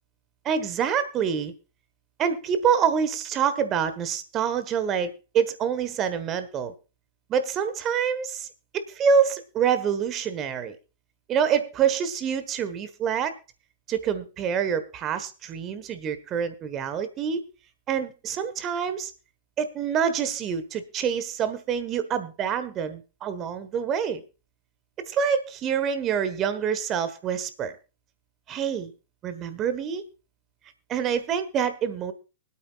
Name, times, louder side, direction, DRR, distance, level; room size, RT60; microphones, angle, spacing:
voice 1, 0.4-1.5 2.2-6.7 7.3-8.5 8.7-10.8 11.3-13.3 13.9-17.4 17.9-19.1 19.6-24.2 25.1-27.8 28.5-28.9 29.2-30.0 30.9-32.1, right 7 dB, 30° right, 12 dB, 1.3 m, -26 dB
24.5 x 8.6 x 2.4 m, 0.32 s
figure-of-eight pair, 105°, 0 cm